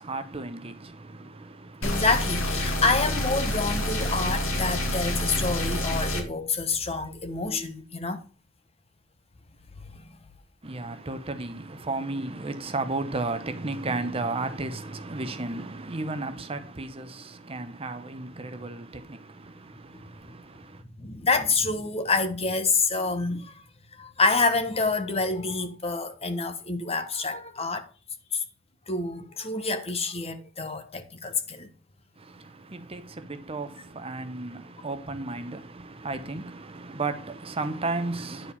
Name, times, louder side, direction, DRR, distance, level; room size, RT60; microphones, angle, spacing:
voice 1, 0.0-2.0 10.6-20.8 32.2-38.5, right 3 dB, 30° right, 0.9 m, -34 dB
sound 1, 1.8-6.2, left 1 dB, 85° left, 2.3 m, -28 dB
voice 2, 1.8-8.2 9.9-10.0 19.9-20.0 21.0-23.6 23.9-27.9 28.3-28.4 28.9-31.7, left 3 dB, 30° left, 1.1 m, -27 dB
10.5 x 4.6 x 5.6 m
head